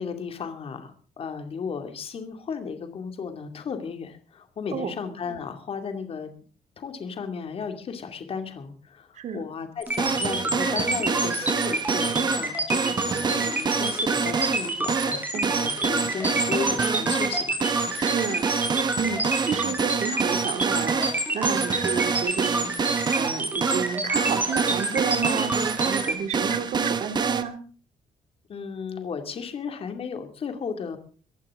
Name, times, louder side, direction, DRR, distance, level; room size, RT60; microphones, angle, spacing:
voice 1, 0.0-6.3 6.8-17.6 28.5-31.0, left 6 dB, 40° left, 7 dB, 2.4 m, -35 dB
voice 2, 9.2-9.5 15.3-15.6 18.0-18.5 19.0-21.1 21.3-22.8 23.2-27.6, right 7 dB, 50° right, 8 dB, 2.6 m, -31 dB
sound 1, 9.8-26.1, right 2 dB, 10° right, 4.3 m, -28 dB
sound 2, 10.0-27.4, right 5 dB, 30° right, 1.2 m, -27 dB
23.0 x 15.0 x 3.7 m, 0.41 s
cardioid pair, 175°, 15 cm